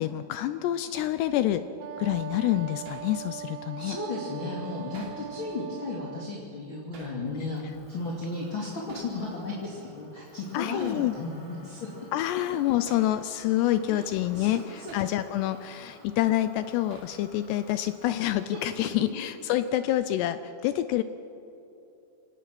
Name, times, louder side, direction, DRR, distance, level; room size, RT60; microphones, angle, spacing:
voice 1, 0.0-1.7 2.0-4.0 10.5-11.1 12.1-21.0, left 13 dB, 85° left, 12 dB, 2.4 m, -27 dB
Hammer, 1.0-1.2 2.9-3.1 4.9-5.3 6.9-7.2 8.9-9.2 10.8-11.1 12.9-13.1 14.9-15.2 16.9-17.2, right 3 dB, 55° right, 4.7 m, -48 dB
Wind instrument woodwind instrument, 1.8-6.4, right 10 dB, 80° right, 2.8 m, -40 dB
voice 2, 3.8-7.6 7.9-11.9 13.9-14.0 14.3-14.5 14.8-14.9 16.0-16.1, left 3 dB, 35° left, -3 dB, 2.4 m, -34 dB
Motor vehicle (road), 7.2-19.8, equal, 10° left, 0.9 m, -54 dB
26.5 x 18.5 x 6.1 m, 2.8 s
omnidirectional pair, 5.4 m